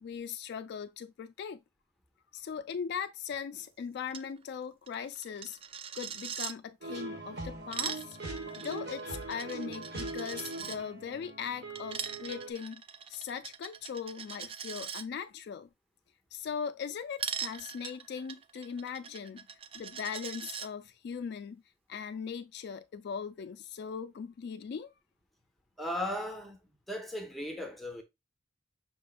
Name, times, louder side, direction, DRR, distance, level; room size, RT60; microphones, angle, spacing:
voice 1, 0.0-1.6 2.3-5.6 5.9-8.2 8.5-12.8 13.1-15.7 16.3-19.5 19.7-21.6 21.9-24.9, left 7 dB, 60° left, 0.3 m, -39 dB
Coin (dropping), 4.1-4.3 4.5-4.6 4.9-6.5 7.5-10.8 11.7-15.0 17.2-20.7, right 7 dB, 30° right, 0.3 m, -41 dB
sound 1, 6.8-12.5, right 2 dB, 60° right, 1.3 m, -41 dB
voice 2, 25.8-26.6 26.9-28.0, left 1 dB, ahead, 0.7 m, -36 dB
5.8 x 3.4 x 2.4 m
head